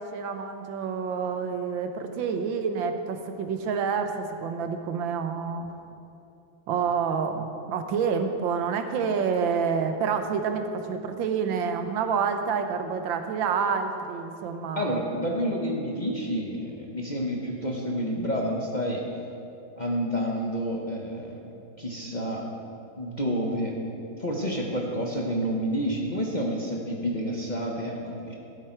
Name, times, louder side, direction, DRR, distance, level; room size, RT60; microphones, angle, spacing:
voice 1, 0.0-5.7 6.7-15.0, right 6 dB, 85° right, 7 dB, 1.6 m, -28 dB
voice 2, 14.8-19.0 19.8-21.5 21.8-22.4 23.0-23.8 24.2-28.3, equal, 30° left, -2 dB, 0.9 m, -29 dB
15.0 x 8.1 x 4.5 m, 2.7 s
omnidirectional pair, 2.0 m